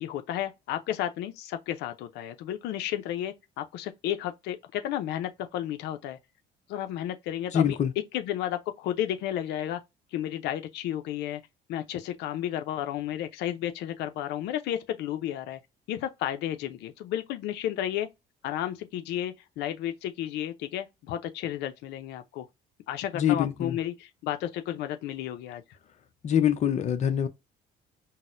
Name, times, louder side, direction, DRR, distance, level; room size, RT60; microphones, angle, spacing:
voice 1, 0.0-6.2 6.7-7.8 8.1-9.8 10.1-11.4 11.7-15.6 15.9-18.1 18.4-22.5 22.9-25.6, left 11 dB, 85° left, 0.5 m, -32 dB
voice 2, 7.5-7.9 23.1-23.8 26.2-27.3, left 9 dB, 45° left, 0.6 m, -24 dB
4.0 x 2.1 x 2.5 m
cardioid pair, 110°, 17 cm